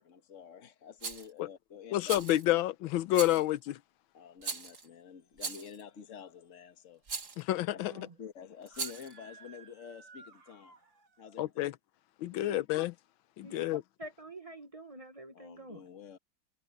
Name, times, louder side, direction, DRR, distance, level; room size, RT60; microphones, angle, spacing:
voice 1, 0.0-2.2 4.1-7.0 7.4-7.5 8.2-10.7 11.2-11.7 15.3-16.2, left 7 dB, 45° left, 1.6 m, -49 dB
Rattle, 1.0-1.3 2.1-2.5 3.1-3.5 4.4-4.9 5.4-5.8 7.1-7.4 8.7-9.1, right 4 dB, 40° right, 2.3 m, -39 dB
voice 2, 1.9-3.7 7.4-8.1 11.4-11.7 12.2-12.9 13.4-13.8, left 15 dB, 90° left, 1.5 m, -29 dB
voice 3, 7.8-8.2 12.2-12.6 13.4-15.9, right 2 dB, 20° right, 1.1 m, -47 dB
Screaming, 8.6-11.4, right 4 dB, 75° right, 4.2 m, -57 dB
omnidirectional pair, 2.1 m